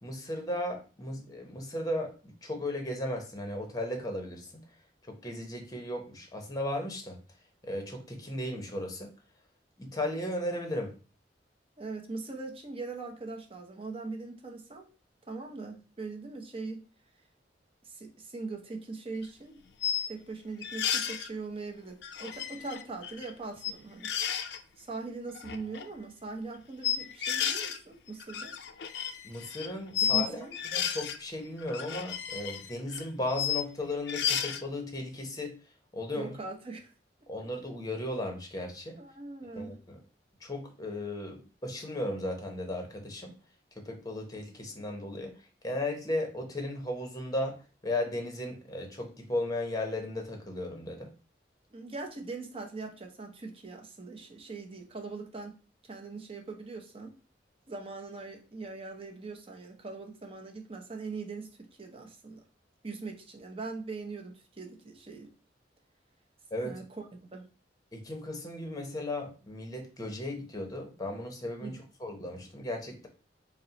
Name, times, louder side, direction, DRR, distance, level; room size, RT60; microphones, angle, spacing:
voice 1, 0.0-4.6 5.1-7.2 7.6-9.1 9.8-10.9 29.2-35.6 35.9-36.3 37.3-39.0 39.5-40.0 40.4-43.3 43.8-45.4 45.6-51.1 66.5-66.8 67.9-73.1, left 1 dB, 20° left, 3 dB, 0.8 m, -36 dB
voice 2, 11.8-14.9 15.3-16.9 17.8-19.6 20.1-24.1 24.8-28.5 30.0-30.6 36.1-36.9 39.0-39.8 51.7-57.1 57.7-62.4 62.8-65.3 66.6-67.5 71.6-71.8, right 3 dB, 30° right, 2 dB, 0.7 m, -41 dB
sound 1, 19.1-19.2 19.8-20.1 20.6-21.3 22.0-23.3 23.6-23.7 24.0-24.6 25.3-25.9 26.8-27.8 28.1-30.2 30.5-31.2 31.6-33.6 34.1-34.6, left 9 dB, 65° left, 0.4 m, -32 dB
4.2 x 2.1 x 3.9 m, 0.35 s
head